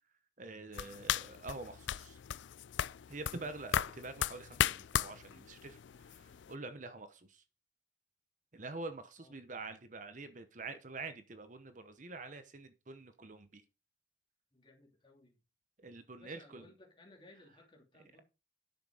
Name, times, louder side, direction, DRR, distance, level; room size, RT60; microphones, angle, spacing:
voice 1, 0.4-2.2 3.1-5.8 6.1-7.4 8.5-13.6 15.8-16.7, right 3 dB, 45° right, 1.0 m, -46 dB
sound 1, 0.7-6.5, left 10 dB, 80° left, 0.4 m, -37 dB
voice 2, 5.1-5.5 5.9-6.5 6.8-6.9 9.2-9.3 14.5-15.4 16.2-18.2, left 2 dB, 25° left, 2.8 m, -61 dB
10.5 x 6.6 x 4.9 m
head